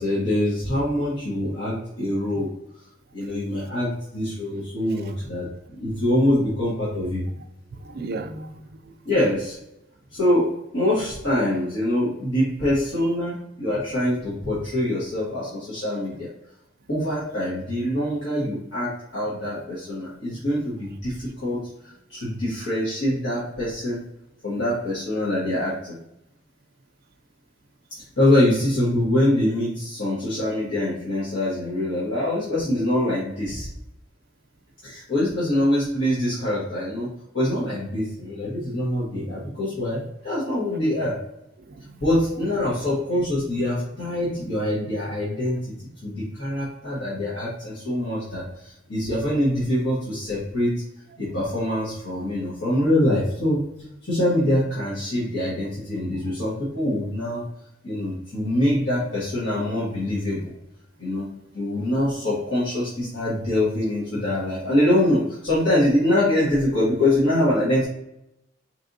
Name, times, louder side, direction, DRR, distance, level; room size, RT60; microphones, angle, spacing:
voice 1, 0.0-2.5 3.1-5.5 5.7-7.2 9.0-9.6 10.1-16.3 16.9-24.0 24.4-26.0 28.0-33.7 34.8-41.2 42.0-45.7 46.0-50.8 51.2-53.6 54.0-57.5 57.8-60.5 61.0-61.3 61.5-67.9, left 1 dB, 75° left, 1.4 m, -24 dB
voice 2, 7.7-8.9 20.3-20.4 41.7-42.0 43.5-43.6 56.2-56.3, right 3 dB, 50° right, 0.4 m, -36 dB
4.3 x 3.3 x 2.6 m
head